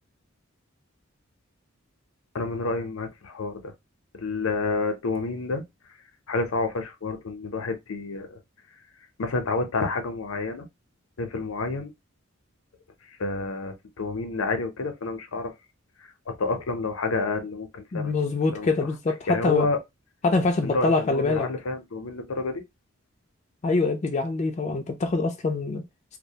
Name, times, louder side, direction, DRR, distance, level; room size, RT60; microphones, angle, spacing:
voice 1, 2.3-3.7 4.1-5.6 6.3-8.4 9.2-10.7 11.2-11.9 13.1-15.5 16.3-18.7 19.3-19.8 20.6-22.6, left 3 dB, 90° left, 0.6 m, -29 dB
voice 2, 17.9-19.7 20.2-21.5 23.6-25.8, left 3 dB, 35° left, 0.3 m, -24 dB
2.3 x 2.1 x 2.7 m
head